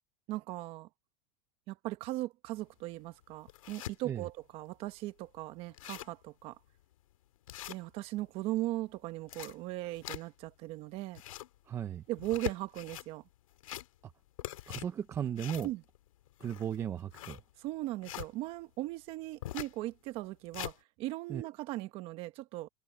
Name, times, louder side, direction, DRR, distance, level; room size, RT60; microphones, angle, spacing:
voice 1, 0.3-0.9 1.7-6.6 7.7-11.2 12.1-13.2 15.6-15.8 17.6-22.7, right 17 dB, 35° right, 1.4 m, -38 dB
sound 1, 2.6-2.7 3.2-4.0 4.5-4.6 4.9-5.0 5.4-5.5 5.6-6.2 6.7-6.8 7.5-8.3 9.0-10.5 11.0-11.6 12.1-13.1 13.5-14.1 14.4-18.3 19.4-19.8 20.2-20.8, left 13 dB, 90° left, 2.3 m, -43 dB
voice 2, 11.7-12.0 14.0-14.1 14.7-15.7 16.4-17.4 21.3-21.5, right 9 dB, 15° right, 0.6 m, -36 dB
supercardioid pair, 165°, 17 cm